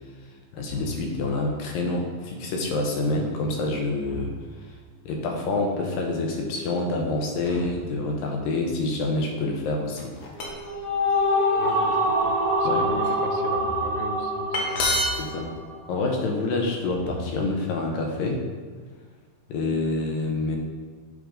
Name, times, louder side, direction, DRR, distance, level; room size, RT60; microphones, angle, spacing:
voice 1, 0.5-4.3 5.1-10.1 12.6-12.9 15.2-15.5 15.9-18.4 19.5-20.6, left 2 dB, 80° left, 1 dB, 2.5 m, -27 dB
sound 1, 0.7-1.4 4.0-4.8 7.4-8.6 13.5-14.2 16.9-17.7, left 1 dB, 25° left, 1.2 m, -40 dB
crowbar drop on ground and pickup various, 9.9-10.7 11.4-11.7 12.3-13.1 14.2-14.3 14.5-15.3, left 1 dB, 65° left, 1.7 m, -27 dB
sound 2, 10.4-15.9, equal, 70° right, 2.3 m, -25 dB
voice 2, 11.6-14.9, right 3 dB, 90° right, 4 dB, 2.4 m, -37 dB
8.0 x 3.8 x 5.1 m, 1.5 s
omnidirectional pair, 4.1 m